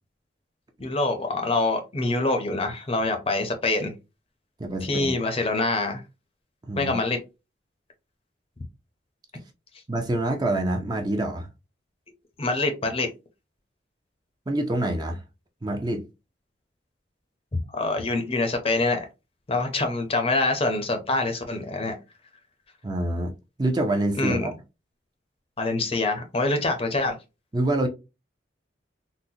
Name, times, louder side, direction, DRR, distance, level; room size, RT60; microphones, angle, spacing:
voice 1, 0.8-3.9 4.8-6.0 6.8-7.2 12.4-13.1 17.7-19.1 19.5-22.0 24.2-24.5 25.6-27.1, left 2 dB, 30° left, 0.6 m, -25 dB
voice 2, 4.6-5.1 6.7-7.0 9.9-11.5 14.5-15.2 15.6-16.0 22.8-23.3 23.6-24.5 27.5-27.9, right 1 dB, 20° right, 0.5 m, -26 dB
3.9 x 2.1 x 2.7 m
head